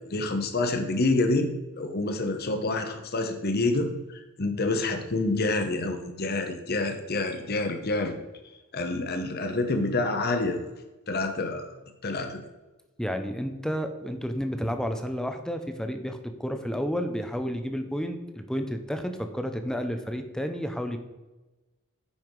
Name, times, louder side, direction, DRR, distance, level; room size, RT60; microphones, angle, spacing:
voice 1, 0.1-1.5 1.8-8.1 8.7-10.6 11.1-11.7 12.0-12.4, left 2 dB, 45° left, 6 dB, 1.0 m, -27 dB
voice 2, 13.0-21.0, equal, 5° left, 7 dB, 0.7 m, -31 dB
9.7 x 5.7 x 4.7 m, 1.1 s
head